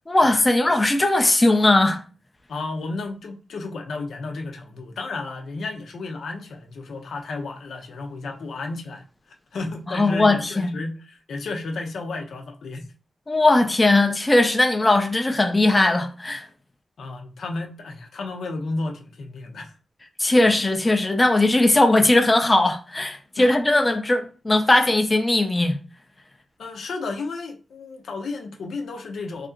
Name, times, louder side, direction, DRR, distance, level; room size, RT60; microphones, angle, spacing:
voice 1, 0.1-2.0 9.9-10.8 13.3-16.5 20.2-25.8, left 2 dB, 20° left, 0.5 m, -19 dB
voice 2, 2.5-9.0 9.5-12.8 17.0-19.7 23.4-23.5 26.6-29.5, left 3 dB, 85° left, 0.8 m, -32 dB
3.3 x 2.8 x 3.7 m
wide cardioid pair, 135°, 0 cm